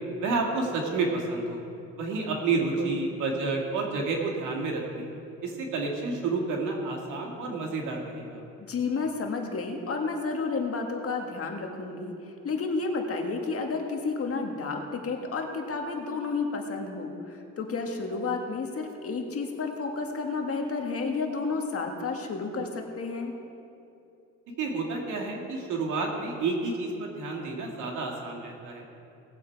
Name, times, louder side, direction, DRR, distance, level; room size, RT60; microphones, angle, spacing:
voice 1, 0.2-1.6 2.0-5.1 5.4-8.4 24.6-28.8, right 3 dB, 90° right, 0 dB, 2.2 m, -30 dB
voice 2, 2.5-2.9 8.6-12.1 12.4-23.3, left 4 dB, 50° left, 2 dB, 1.8 m, -31 dB
18.5 x 7.6 x 4.7 m, 2.7 s
cardioid pair, 90°, 30 cm